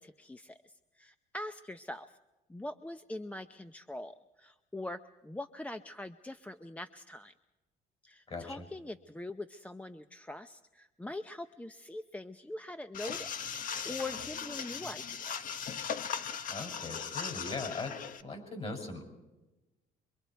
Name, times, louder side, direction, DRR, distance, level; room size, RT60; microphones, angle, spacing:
voice 1, 0.0-2.2 2.5-7.3 8.0-15.5, left 1 dB, 10° left, 9 dB, 0.6 m, -43 dB
voice 2, 8.3-8.7 16.5-17.9 18.2-19.0, left 3 dB, 35° left, 4 dB, 6.2 m, -39 dB
sound 1, 12.9-18.2, left 7 dB, 50° left, 1.1 m, -38 dB
24.5 x 24.0 x 4.6 m, 1.1 s
cardioid pair, 110°, 17 cm